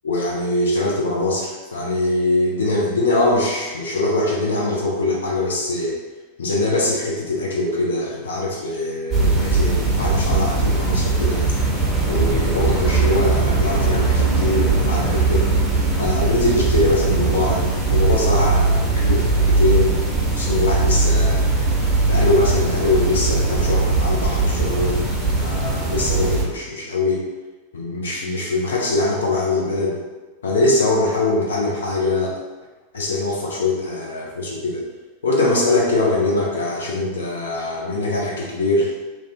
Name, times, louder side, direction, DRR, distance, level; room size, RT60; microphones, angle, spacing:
voice 1, 0.0-5.9 6.4-11.4 12.1-15.4 16.0-20.0 20.4-21.4 22.0-25.0 25.3-27.2 27.7-30.0 30.4-32.3 32.9-34.8 35.2-38.9, left 2 dB, 65° left, -3 dB, 0.6 m, -22 dB
sound 1, 9.1-26.4, right 3 dB, 15° right, 0.7 m, -19 dB
2.5 x 2.1 x 3.4 m, 1.2 s
figure-of-eight pair, 90°, 0 cm